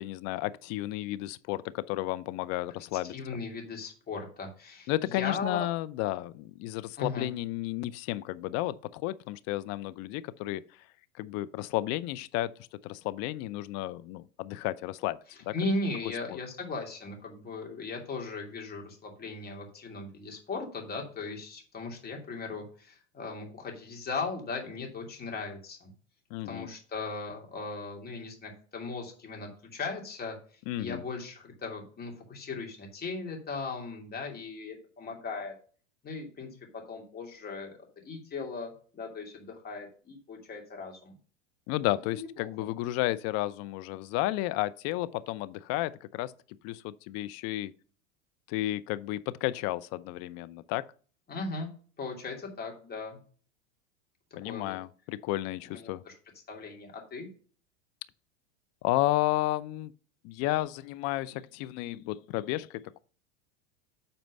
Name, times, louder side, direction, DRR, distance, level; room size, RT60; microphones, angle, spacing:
voice 1, 0.0-3.1 4.9-10.6 11.2-12.5 12.8-15.2 15.5-15.6 26.3-26.7 30.7-31.0 41.7-46.3 46.6-47.7 48.5-50.8 54.4-56.0 58.8-59.9 60.2-63.0, left 16 dB, 45° left, 0.5 m, -32 dB
voice 2, 3.1-5.7 7.0-7.3 15.3-25.9 26.4-35.5 36.0-37.8 38.0-41.1 42.1-42.5 51.3-51.7 52.0-53.2 54.4-54.7 55.7-56.1 56.5-57.3, left 3 dB, 25° left, 2.9 m, -38 dB
8.1 x 4.4 x 5.4 m
hypercardioid pair, 105°, 36 cm